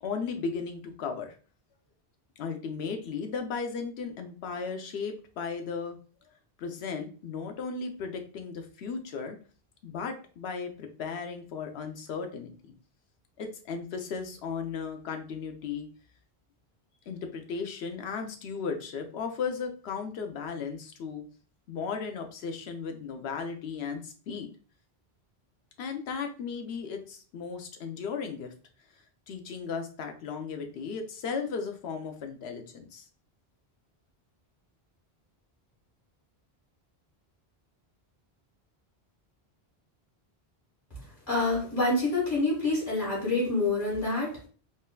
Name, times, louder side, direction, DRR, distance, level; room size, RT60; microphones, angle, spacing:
voice 1, 0.0-1.4 2.4-6.0 6.6-9.4 9.8-12.5 13.4-15.9 17.1-21.2 21.7-24.5 25.8-28.5 29.3-33.1, left 5 dB, 80° left, 5 dB, 0.9 m, -35 dB
voice 2, 41.3-44.5, left 2 dB, 50° left, -5 dB, 2.0 m, -27 dB
3.6 x 2.6 x 2.3 m, 0.39 s
omnidirectional pair, 1.1 m